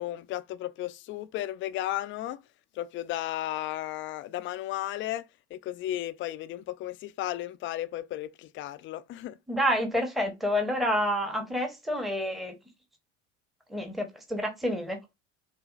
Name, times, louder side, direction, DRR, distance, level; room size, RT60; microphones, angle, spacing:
voice 1, 0.0-2.4 2.8-5.3 5.5-9.4, left 14 dB, 35° left, 0.4 m, -34 dB
voice 2, 9.5-12.5 13.7-15.0, equal, ahead, 0.8 m, -28 dB
4.8 x 2.3 x 2.4 m
hypercardioid pair, 70°, 37 cm